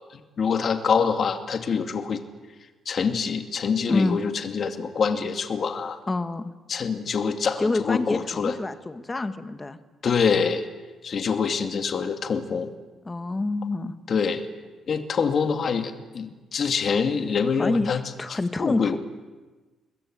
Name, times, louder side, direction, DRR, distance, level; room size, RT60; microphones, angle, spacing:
voice 1, 0.4-2.2 2.9-6.0 6.7-8.6 10.0-10.7 11.0-12.7 14.1-14.4 14.9-18.0 18.3-19.0, left 6 dB, 40° left, 6 dB, 2.4 m, -25 dB
voice 2, 6.1-6.5 7.6-9.8 13.0-13.9 17.6-19.0, left 2 dB, 15° left, 10 dB, 1.4 m, -27 dB
29.5 x 21.0 x 9.0 m, 1.3 s
cardioid pair, 165°, 0 cm